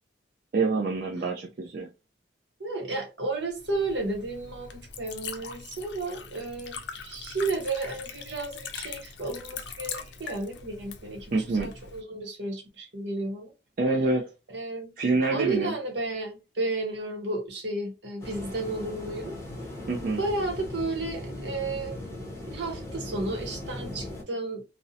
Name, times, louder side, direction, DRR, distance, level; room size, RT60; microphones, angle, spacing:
voice 1, 0.5-1.9 11.3-11.7 13.8-14.2 15.0-15.8 19.9-20.2, right 3 dB, 50° right, 0.4 m, -26 dB
voice 2, 2.6-13.5 14.5-14.9 15.3-19.4 20.2-22.0 22.5-24.6, right 2 dB, 70° right, 0.9 m, -32 dB
Liquid, 3.5-12.0, left 6 dB, 70° left, 0.4 m, -41 dB
sound 1, 18.2-24.2, left 1 dB, 15° left, 0.7 m, -38 dB
2.5 x 2.0 x 2.6 m
head